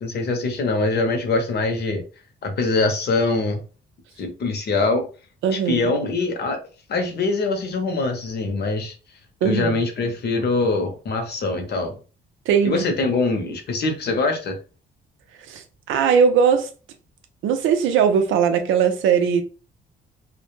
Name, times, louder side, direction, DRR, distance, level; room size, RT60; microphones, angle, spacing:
voice 1, 0.0-2.0 2.4-3.6 4.2-5.1 5.5-6.6 6.9-8.9 9.4-12.0 12.6-14.6, left 3 dB, 55° left, 0.8 m, -23 dB
voice 2, 5.4-5.9 9.4-9.8 12.5-12.9 15.5-15.6 15.9-16.7 17.4-19.4, right 7 dB, 85° right, 0.5 m, -19 dB
2.2 x 2.1 x 3.0 m
cardioid pair, 90°, 20 cm